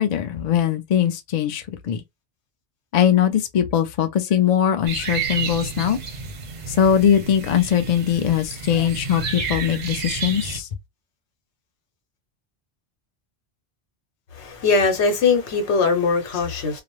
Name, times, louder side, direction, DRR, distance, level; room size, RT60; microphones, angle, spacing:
voice 1, 0.0-2.0 2.9-6.0 6.7-10.7, left 9 dB, 55° left, 0.4 m, -21 dB
sound 1, 4.9-10.6, right 5 dB, 50° right, 0.6 m, -31 dB
voice 2, 14.3-16.8, left 4 dB, 85° left, 1.1 m, -20 dB
2.3 x 2.0 x 2.9 m
omnidirectional pair, 1.1 m